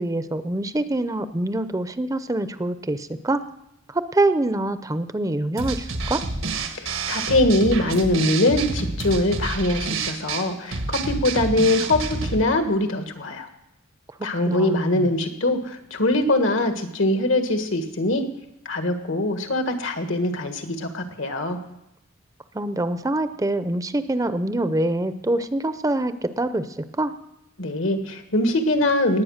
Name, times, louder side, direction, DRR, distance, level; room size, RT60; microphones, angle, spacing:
voice 1, 0.0-3.4 3.9-6.3 14.5-15.1 22.5-27.1, right 2 dB, 15° right, 12 dB, 0.5 m, -25 dB
sound 1, 5.6-12.4, right 3 dB, 85° right, 1.5 m, -28 dB
voice 2, 6.8-13.5 14.2-18.3 18.6-21.6 27.6-29.2, left 1 dB, 80° left, 6 dB, 1.7 m, -22 dB
19.0 x 8.5 x 6.5 m, 0.85 s
head